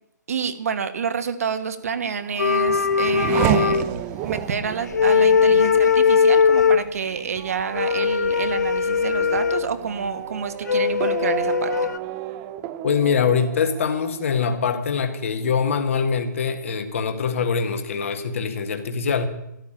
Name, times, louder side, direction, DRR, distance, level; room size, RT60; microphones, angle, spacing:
voice 1, 0.3-3.8 4.2-11.7, right 6 dB, 50° right, 10 dB, 1.6 m, -28 dB
Race car auto racing / Accelerating revving vroom, 1.9-15.2 15.5-16.2, right 12 dB, 15° right, 0.5 m, -32 dB
sound 1, 2.4-4.5 4.8-6.9 7.7-9.7 10.7-12.0, left 6 dB, 65° left, 0.9 m, -19 dB
voice 2, 12.8-19.3, left 6 dB, 45° left, 7 dB, 1.7 m, -23 dB
13.0 x 11.5 x 8.9 m, 0.82 s
hypercardioid pair, 170°, 10 cm